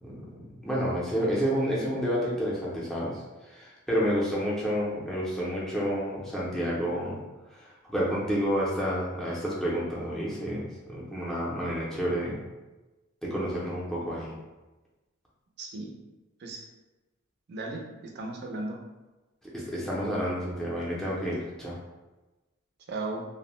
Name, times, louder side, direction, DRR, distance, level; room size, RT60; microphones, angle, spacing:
voice 1, 0.6-7.2 7.5-12.4 13.2-14.3 19.5-21.8, equal, ahead, -7 dB, 0.5 m, -30 dB
voice 2, 15.6-15.9 16.4-16.6 17.5-18.8 22.9-23.2, right 2 dB, 50° right, 1 dB, 0.4 m, -36 dB
2.5 x 2.0 x 3.0 m, 1.1 s
head